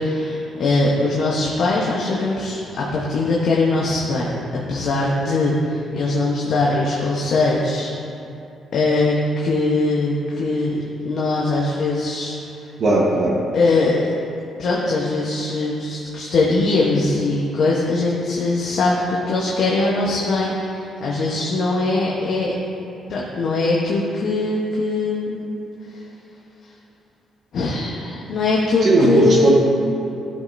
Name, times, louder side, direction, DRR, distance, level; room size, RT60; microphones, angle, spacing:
voice 1, 0.0-4.4 4.7-7.9 8.7-10.8 11.0-12.3 13.5-14.0 14.6-22.5 23.1-25.5 25.9-26.0 27.5-29.5, left 2 dB, 65° left, -4 dB, 1.0 m, -21 dB
voice 2, 12.8-13.3 28.8-29.5, right 2 dB, 55° right, -4 dB, 1.1 m, -16 dB
13.0 x 5.4 x 2.6 m, 2.8 s
cardioid pair, 90°, 0 cm